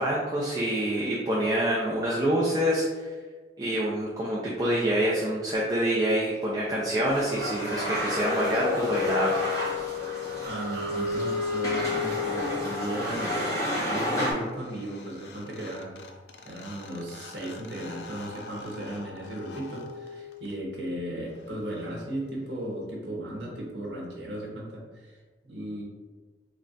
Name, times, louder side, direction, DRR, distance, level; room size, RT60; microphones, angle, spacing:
voice 1, 0.0-3.1 3.6-9.4, right 1 dB, 20° right, -5 dB, 0.5 m, -26 dB
sound 1, 7.0-14.3, equal, 15° left, 1.1 m, -31 dB
sound 2, 7.7-13.1 15.0-15.1 15.3-20.7, left 6 dB, 70° left, 0.4 m, -34 dB
voice 2, 10.4-13.4 13.8-16.0 16.4-25.2 25.4-25.8, right 1 dB, 70° right, -3 dB, 0.9 m, -36 dB
3.3 x 2.4 x 3.9 m, 1.4 s
head